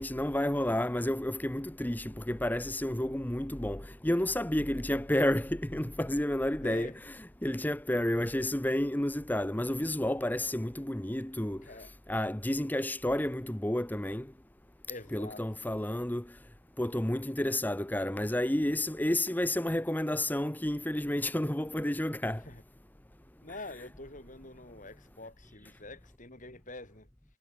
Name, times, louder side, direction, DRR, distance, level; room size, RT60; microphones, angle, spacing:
voice 1, 0.0-14.3 15.1-16.4 16.8-22.4, left 1 dB, 10° left, 0.8 m, -31 dB
voice 2, 6.6-7.0 11.6-11.9 14.9-15.4 22.4-22.6 23.4-27.1, left 2 dB, 35° left, 7.4 m, -46 dB
head